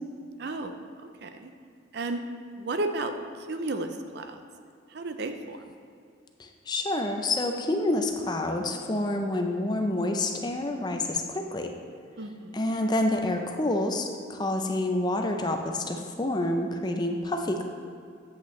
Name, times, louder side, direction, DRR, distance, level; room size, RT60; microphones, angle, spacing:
voice 1, 0.4-0.7 1.2-1.5 1.9-2.2 2.6-4.4 4.9-5.8 12.2-12.7 14.6-14.9 17.1-17.2, right 2 dB, 55° right, 7 dB, 0.5 m, -34 dB
voice 2, 6.4-11.7 12.5-17.6, left 1 dB, 20° left, 4 dB, 0.5 m, -28 dB
8.2 x 8.1 x 3.1 m, 2.3 s
head